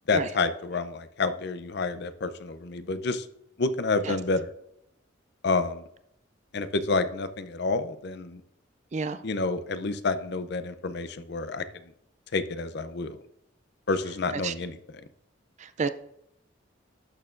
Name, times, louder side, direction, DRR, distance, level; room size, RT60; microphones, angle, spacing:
voice 1, 0.1-3.3 3.6-4.5 5.4-5.8 6.5-8.4 9.2-11.6 12.3-13.2 13.9-14.8, left 3 dB, 60° left, 11 dB, 0.6 m, -29 dB
voice 2, 15.6-15.9, right 5 dB, 35° right, 12 dB, 0.4 m, -30 dB
12.5 x 6.5 x 2.5 m, 0.77 s
head